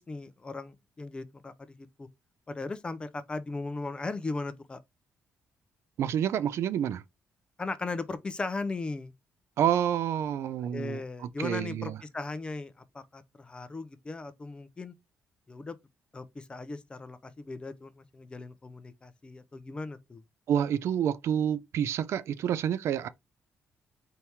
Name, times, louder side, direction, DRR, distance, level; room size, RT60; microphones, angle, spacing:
voice 1, 0.0-2.1 2.5-4.8 7.6-9.1 10.7-14.9 15.5-15.8 16.1-20.2, left 3 dB, 20° left, 0.5 m, -38 dB
voice 2, 6.0-7.0 9.6-12.0 20.5-23.1, right 9 dB, 65° right, 0.4 m, -28 dB
4.5 x 2.8 x 3.4 m
cardioid pair, 150°, 5 cm